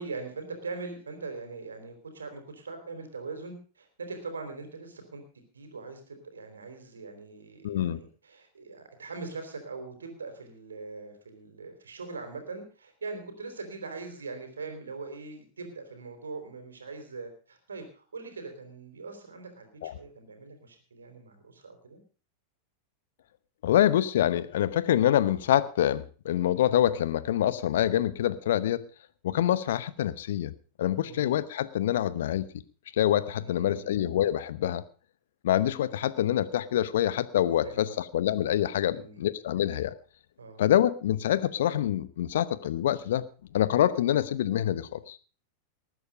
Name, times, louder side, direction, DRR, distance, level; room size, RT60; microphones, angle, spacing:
voice 1, 0.0-19.7 20.0-22.0 31.0-31.4 33.4-34.0 37.6-38.0 38.9-39.2 40.4-40.6, right 4 dB, 80° right, 7 dB, 4.0 m, -41 dB
voice 2, 7.6-8.0 19.8-19.9 23.6-28.9 29.2-30.5 30.8-32.5 32.9-34.8 35.4-39.9 40.6-43.3 43.5-45.3, left 11 dB, 65° left, 17 dB, 1.0 m, -26 dB
19.5 x 9.4 x 5.1 m, 0.38 s
figure-of-eight pair, 90°, 0 cm